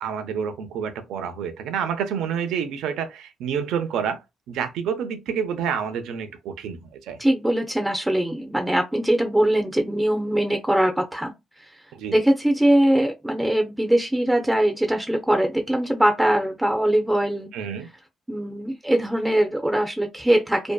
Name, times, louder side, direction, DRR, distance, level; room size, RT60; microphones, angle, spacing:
voice 1, 0.0-7.2 11.9-12.2 17.5-17.9, right 7 dB, 85° right, 0.5 m, -28 dB
voice 2, 7.2-11.3 12.1-17.5 18.3-20.7, right 1 dB, 10° right, 0.5 m, -21 dB
2.6 x 2.1 x 2.2 m
cardioid pair, 90°, 0 cm